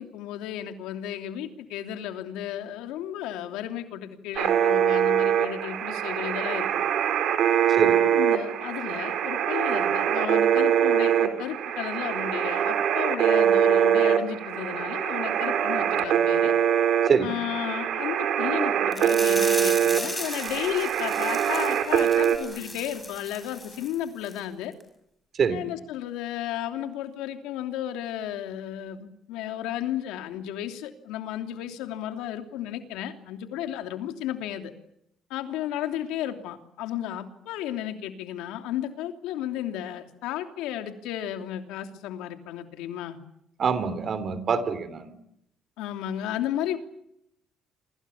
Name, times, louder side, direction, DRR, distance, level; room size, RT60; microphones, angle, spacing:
voice 1, 0.0-6.7 8.0-16.5 17.2-24.7 25.5-34.7 35.3-43.2 45.8-46.8, left 11 dB, 90° left, 6 dB, 3.0 m, -33 dB
sound 1, 4.4-22.4, right 9 dB, 65° right, 4.5 m, -23 dB
voice 2, 7.7-8.0 17.0-17.3 25.3-25.7 43.6-45.2, right 6 dB, 45° right, 13 dB, 3.4 m, -25 dB
sound 2, 18.9-23.9 24.2-24.4 24.8-24.9, left 1 dB, 5° left, 6.4 m, -36 dB
29.0 x 25.5 x 7.3 m, 0.78 s
cardioid pair, 105°, 0 cm